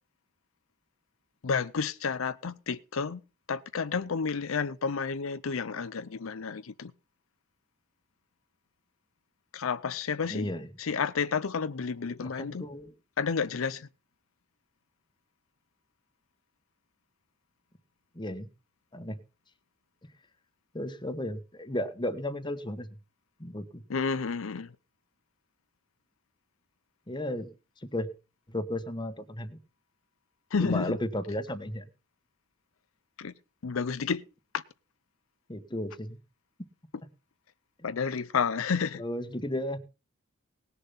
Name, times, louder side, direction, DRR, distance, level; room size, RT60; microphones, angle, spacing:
voice 1, 1.4-3.2 3.5-6.9 9.5-10.5 10.8-12.7 13.2-13.9 23.9-24.7 30.5-30.9 33.2-33.3 33.6-34.2 34.5-34.6 37.8-39.0, left 5 dB, 75° left, 0.6 m, -30 dB
voice 2, 10.3-10.7 12.2-12.9 18.1-18.5 18.9-19.2 20.7-22.9 23.4-23.8 27.1-27.5 27.9-28.1 28.5-29.6 30.6-31.9 35.5-36.2 39.0-39.8, left 1 dB, 20° left, 1.2 m, -34 dB
18.5 x 6.8 x 5.5 m
head